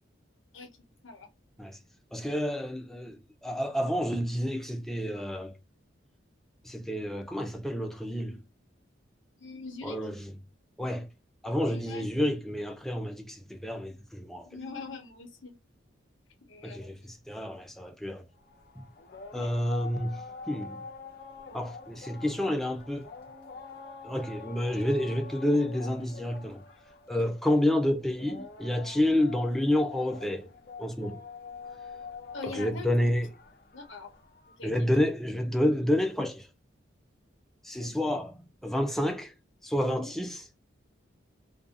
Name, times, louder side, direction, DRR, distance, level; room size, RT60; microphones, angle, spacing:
voice 1, 2.1-5.5 6.6-8.4 9.8-10.4 10.8-11.1 11.4-14.6 16.6-18.3 19.3-20.8 21.5-23.1 24.0-26.6 27.1-30.5 30.8-31.2 32.4-33.3 34.6-36.5 37.6-39.3 39.6-40.5, left 1 dB, ahead, 0.3 m, -29 dB
voice 2, 9.4-10.0 11.7-12.1 14.5-15.5 16.5-17.1 32.3-32.9 33.7-34.1 34.6-34.7 37.8-37.9 39.8-40.1, left 4 dB, 85° left, 0.9 m, -42 dB
sound 1, 18.4-34.7, left 5 dB, 50° left, 0.6 m, -46 dB
2.6 x 2.4 x 2.3 m
head